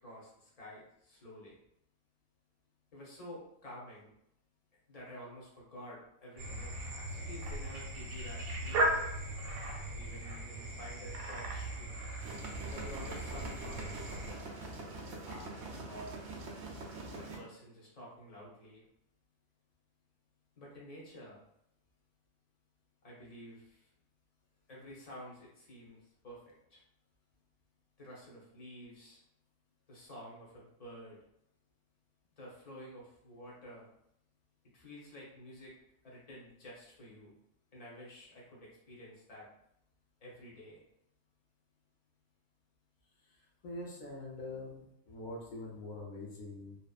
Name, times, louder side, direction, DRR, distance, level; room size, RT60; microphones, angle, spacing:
voice 1, 0.0-1.6 2.9-4.1 4.9-8.9 9.9-11.9 12.7-14.5 15.0-16.3 17.1-18.8 20.6-21.4 23.0-23.9 24.7-26.4 26.7-26.8 28.0-29.2 29.9-31.2 32.4-33.9 34.7-35.7 36.0-37.3 37.7-39.5 40.2-40.8, equal, 40° left, -5 dB, 0.6 m, -50 dB
sound 1, 6.4-14.3, right 1 dB, 90° right, 1.0 m, -37 dB
sound 2, 12.2-17.4, right 2 dB, 65° right, 0.7 m, -44 dB
voice 2, 43.2-46.8, left 2 dB, 90° left, -3 dB, 0.4 m, -44 dB
2.9 x 2.0 x 2.3 m, 0.77 s
omnidirectional pair, 1.4 m